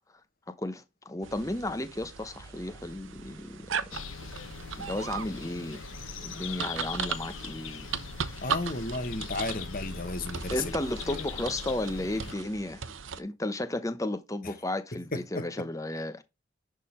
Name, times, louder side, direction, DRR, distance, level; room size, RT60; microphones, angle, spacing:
voice 1, 0.6-3.8 4.8-5.9 6.2-7.9 8.2-8.5 10.5-16.2, left 1 dB, 15° left, 0.8 m, -34 dB
sound 1, 1.2-13.2, right 6 dB, 80° right, 0.8 m, -38 dB
sound 2, 3.9-12.3, left 5 dB, 85° left, 1.0 m, -40 dB
voice 2, 8.4-10.7 11.1-11.3 14.4-14.5 14.9-15.5, left 2 dB, 45° left, 1.2 m, -34 dB
10.5 x 3.8 x 4.3 m
head